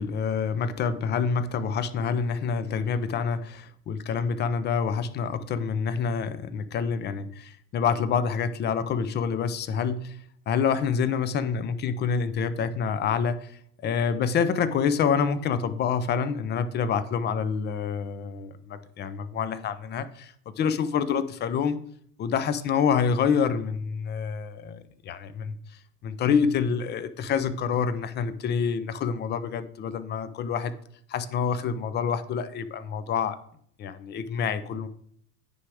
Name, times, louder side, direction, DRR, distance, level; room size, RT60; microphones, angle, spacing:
voice 1, 0.0-10.2 10.5-13.5 13.8-21.8 22.2-25.6 26.0-30.7 31.1-33.4 33.8-34.9, left 6 dB, 25° left, 14 dB, 0.4 m, -27 dB
9.4 x 3.5 x 4.8 m, 0.65 s
hypercardioid pair, 95°, 47 cm